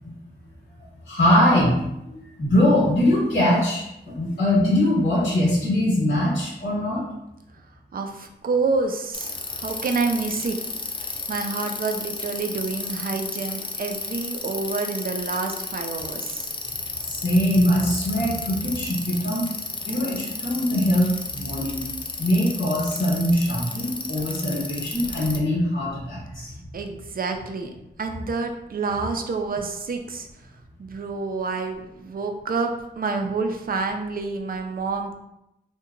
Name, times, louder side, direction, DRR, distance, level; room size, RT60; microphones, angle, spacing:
voice 1, 1.1-1.7 2.1-3.8 4.1-7.0 17.1-19.5 19.9-21.8 22.2-26.5, left 1 dB, 70° left, -8 dB, 1.0 m, -22 dB
voice 2, 7.9-10.6 11.3-16.5 26.7-27.7 28.0-30.3 30.8-35.2, right 4 dB, 50° right, 4 dB, 0.4 m, -28 dB
Bicycle, 9.1-25.4, left 3 dB, 25° left, 0.4 m, -33 dB
2.8 x 2.2 x 2.4 m, 0.86 s
cardioid pair, 60°, 19 cm